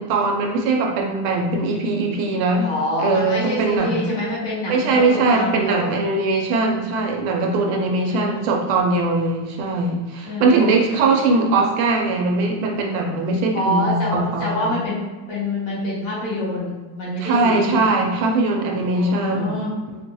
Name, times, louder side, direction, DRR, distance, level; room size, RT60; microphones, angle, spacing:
voice 1, 0.0-2.7 3.0-4.1 4.7-14.7 17.2-19.6, right 3 dB, 80° right, 1 dB, 1.4 m, -21 dB
voice 2, 2.6-6.0 7.0-7.2 8.1-8.4 10.2-10.5 10.8-11.0 13.5-15.0 15.3-17.8 18.9-19.8, left 1 dB, 75° left, -7 dB, 2.1 m, -26 dB
4.4 x 2.7 x 2.2 m, 1.2 s
omnidirectional pair, 2.3 m